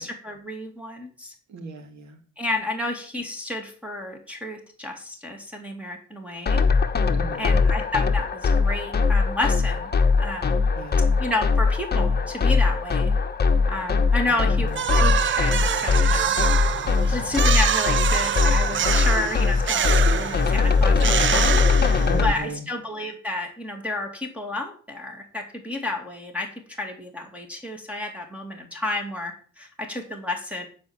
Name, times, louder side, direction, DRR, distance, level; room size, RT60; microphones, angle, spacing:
voice 1, 0.0-1.3 2.4-6.6 7.4-9.9 10.2-10.5 11.2-13.1 13.7-16.7 17.1-21.7 22.2-26.5 26.8-30.7, left 2 dB, 5° right, 2 dB, 2.5 m, -31 dB
voice 2, 1.5-2.2 7.1-7.7 10.7-11.1 14.3-14.8 22.0-22.6, right 3 dB, 65° right, 4 dB, 2.9 m, -36 dB
sound 1, 6.5-22.3, left 4 dB, 35° left, 1.2 m, -21 dB
sound 2, 14.7-22.4, right 9 dB, 40° right, 0.5 m, -25 dB
11.0 x 5.1 x 7.4 m, 0.43 s
cardioid pair, 90°, 30 cm